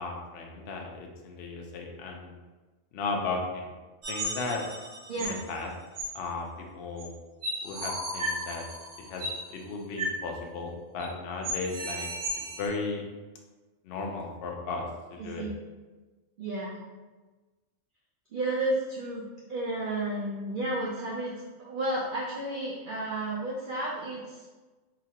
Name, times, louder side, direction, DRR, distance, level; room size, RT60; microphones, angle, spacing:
voice 1, 0.0-2.4 2.9-3.7 4.1-4.6 5.2-5.7 6.1-6.5 6.7-7.1 7.6-8.6 9.1-12.1 12.6-13.0 13.8-15.5, left 3 dB, 65° left, 1 dB, 0.6 m, -35 dB
sound 1, 4.0-5.4 5.9-6.0 7.0-7.1 7.4-9.4 10.0-10.2 10.4-10.5 11.0-11.1 11.4-12.7, right 1 dB, 50° right, 0.8 m, -35 dB
voice 2, 15.2-15.5 16.4-16.8 18.3-21.3 21.6-24.5, right 2 dB, 70° right, -4 dB, 0.5 m, -32 dB
2.9 x 2.4 x 2.8 m, 1.3 s
omnidirectional pair, 1.3 m